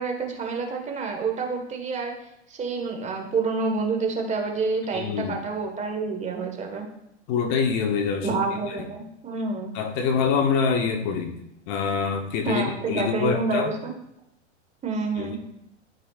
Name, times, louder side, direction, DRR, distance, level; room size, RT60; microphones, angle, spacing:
voice 1, 0.0-2.1 2.5-6.8 8.2-9.7 12.4-13.9 14.8-15.4, right 4 dB, 20° right, 2 dB, 1.5 m, -28 dB
voice 2, 4.9-5.4 7.3-8.4 8.8-8.9 9.7-11.4 11.7-13.7 15.2-15.4, left 6 dB, 45° left, 5 dB, 1.0 m, -25 dB
12.5 x 5.1 x 2.5 m, 0.79 s
hypercardioid pair, 115°, 35 cm